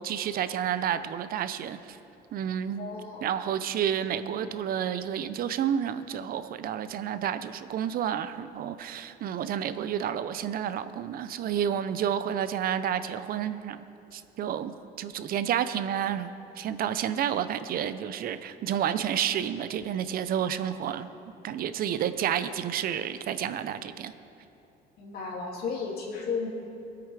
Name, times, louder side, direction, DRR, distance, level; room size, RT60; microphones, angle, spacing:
voice 1, 0.0-2.0 2.3-2.9 3.2-13.8 14.1-14.7 15.0-21.1 21.4-24.1, right 9 dB, 60° right, 12 dB, 0.6 m, -30 dB
voice 2, 2.8-3.3 25.0-26.5, left 5 dB, 70° left, -1 dB, 2.7 m, -34 dB
20.5 x 8.6 x 4.9 m, 2.8 s
cardioid pair, 110°, 17 cm